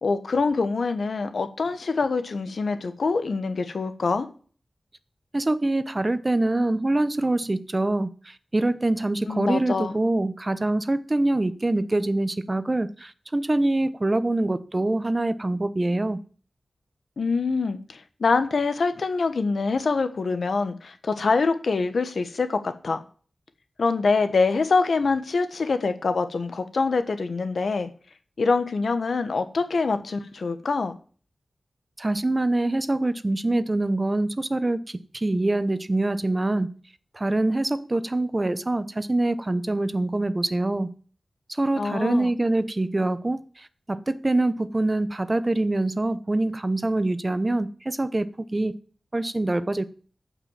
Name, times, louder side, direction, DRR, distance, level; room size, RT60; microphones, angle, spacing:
voice 1, 0.0-4.3 9.3-9.9 17.2-23.0 23.8-27.9 28.4-30.9 41.8-42.3, left 4 dB, 80° left, 10 dB, 1.3 m, -25 dB
voice 2, 5.3-16.2 32.0-36.7 37.1-40.9 41.5-48.8 49.1-49.8, right 2 dB, 30° right, 14 dB, 0.9 m, -25 dB
12.5 x 6.0 x 7.3 m, 0.42 s
wide cardioid pair, 70°, 0 cm